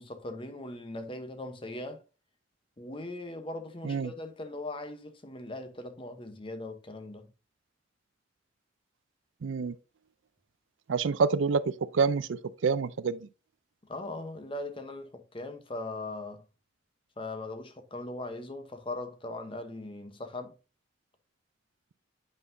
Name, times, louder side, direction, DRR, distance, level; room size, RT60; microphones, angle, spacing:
voice 1, 0.0-2.0 2.8-7.3 13.9-16.4 17.2-20.5, left 2 dB, 25° left, 0.9 m, -39 dB
voice 2, 9.4-9.7 10.9-13.2, right 5 dB, 80° right, 0.4 m, -27 dB
8.3 x 5.5 x 2.6 m
head